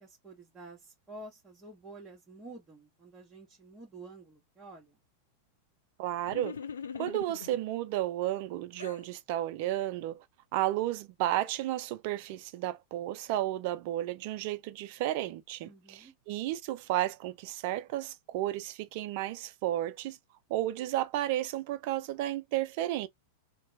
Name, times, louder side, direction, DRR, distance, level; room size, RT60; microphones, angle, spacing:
voice 1, 0.0-5.0 15.6-16.1, right 2 dB, 15° right, 1.1 m, -50 dB
voice 2, 6.0-6.6 7.0-10.2 10.5-20.2 20.5-23.1, right 14 dB, 55° right, 0.4 m, -33 dB
sound 1, 6.3-7.6 8.2-9.1, left 7 dB, 80° left, 0.3 m, -42 dB
2.9 x 2.1 x 2.7 m
hypercardioid pair, 100°, 0 cm